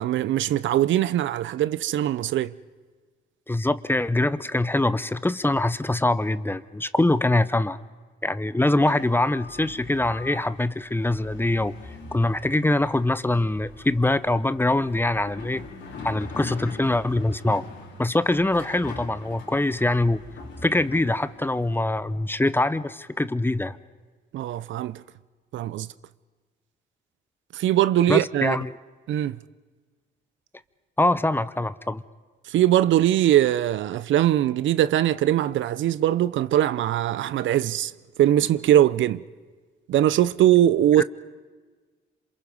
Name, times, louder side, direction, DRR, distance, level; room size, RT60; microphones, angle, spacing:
voice 1, 0.0-2.5 24.3-25.0 25.5-25.9 27.5-28.6 29.1-29.4 32.5-37.9 38.2-39.2 39.9-41.0, right 12 dB, 75° right, 0.6 m, -21 dB
voice 2, 3.5-7.8 8.2-11.7 12.1-15.7 16.0-17.6 18.0-20.2 20.6-23.8 28.1-28.8 31.0-32.0 41.0-41.1, left 2 dB, 10° left, 0.7 m, -23 dB
sound 1, 8.8-21.8, left 3 dB, 70° left, 4.1 m, -42 dB
27.0 x 27.0 x 5.4 m
cardioid pair, 90°, 20 cm